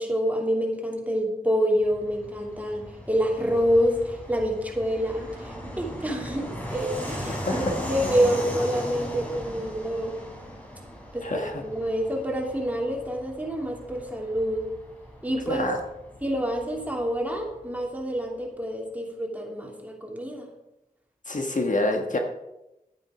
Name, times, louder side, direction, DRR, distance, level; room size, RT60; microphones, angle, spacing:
voice 1, 0.0-10.1 11.1-14.6 15.2-15.7 16.2-20.5, equal, 10° right, 0 dB, 2.9 m, -27 dB
Fixed-wing aircraft airplane, 1.8-18.0, equal, 10° left, 3.7 m, -38 dB
voice 2, 7.4-7.7 11.2-11.6 15.5-15.8 21.3-22.2, left 2 dB, 55° left, 3 dB, 1.4 m, -27 dB
11.5 x 9.2 x 5.0 m, 0.93 s
wide cardioid pair, 55°, 15 cm